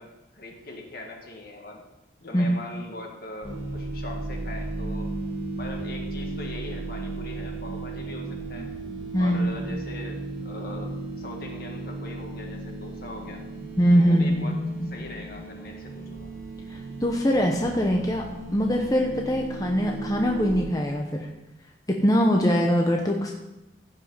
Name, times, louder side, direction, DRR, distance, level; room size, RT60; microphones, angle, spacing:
voice 1, 0.0-1.8 2.2-5.1 5.6-8.7 9.2-13.4 14.0-14.6 14.9-16.3, left 2 dB, 55° left, 2 dB, 1.9 m, -41 dB
sound 1, 3.4-20.6, right 2 dB, 15° right, 4.6 m, -35 dB
voice 2, 9.1-9.5 9.7-9.8 13.8-14.9 16.7-21.3 21.9-23.3, equal, 20° left, 0 dB, 0.9 m, -23 dB
15.5 x 5.5 x 5.6 m, 0.97 s
head